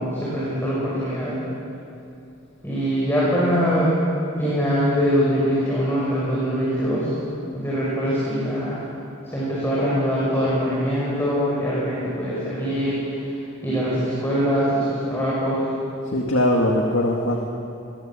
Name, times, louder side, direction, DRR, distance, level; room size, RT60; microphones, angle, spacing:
voice 1, 0.0-1.4 2.6-3.9 4.4-7.1 7.5-8.8 9.3-15.7, equal, 10° left, -8 dB, 6.4 m, -23 dB
voice 2, 16.1-17.4, left 1 dB, 65° left, 1 dB, 2.1 m, -20 dB
25.5 x 22.0 x 7.6 m, 2.7 s
head